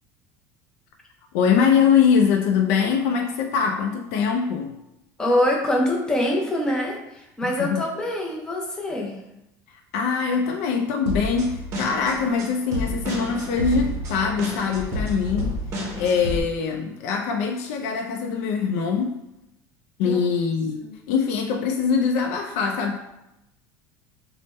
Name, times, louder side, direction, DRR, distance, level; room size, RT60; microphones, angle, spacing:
voice 1, 1.3-4.8 7.4-7.9 9.9-15.6 16.0-19.2 20.0-23.0, left 6 dB, 70° left, 2 dB, 0.4 m, -23 dB
voice 2, 5.2-9.2 20.0-20.2 20.8-20.9, left 1 dB, 10° left, -1 dB, 0.5 m, -24 dB
sound 1, 11.1-16.4, equal, 35° right, 0.7 m, -30 dB
3.3 x 2.0 x 4.2 m, 0.89 s
cardioid pair, 170°, 8 cm